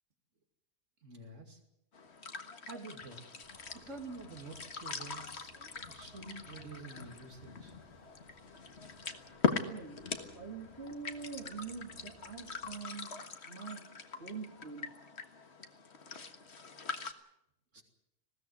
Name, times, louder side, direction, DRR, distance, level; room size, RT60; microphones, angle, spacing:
voice 1, 1.0-1.6 2.6-3.2 3.7-7.8 17.7-17.8, right 3 dB, 65° right, 4 dB, 2.9 m, -48 dB
sound 1, 1.9-17.1, left 5 dB, 55° left, 1.8 m, -41 dB
sound 2, 3.4-12.9, right 2 dB, 35° right, 2.2 m, -64 dB
voice 2, 9.6-10.0 10.3-13.2 13.4-13.8 14.2-14.9, right 5 dB, 50° right, 2 dB, 2.6 m, -44 dB
20.5 x 16.5 x 9.4 m, 0.80 s
omnidirectional pair, 1.4 m